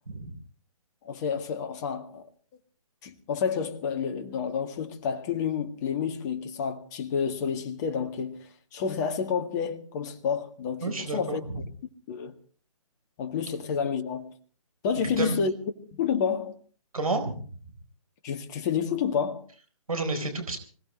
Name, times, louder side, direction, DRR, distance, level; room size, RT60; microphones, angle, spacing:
voice 1, 1.0-2.3 3.0-11.6 12.1-12.4 13.2-14.3 14.8-15.5 15.9-16.6 18.2-19.4, left 6 dB, 30° left, 1.9 m, -29 dB
voice 2, 10.8-11.4 15.0-15.4 16.9-17.4 19.9-20.6, right 3 dB, 75° right, 4.1 m, -30 dB
25.5 x 17.0 x 3.2 m
figure-of-eight pair, 140°, 19 cm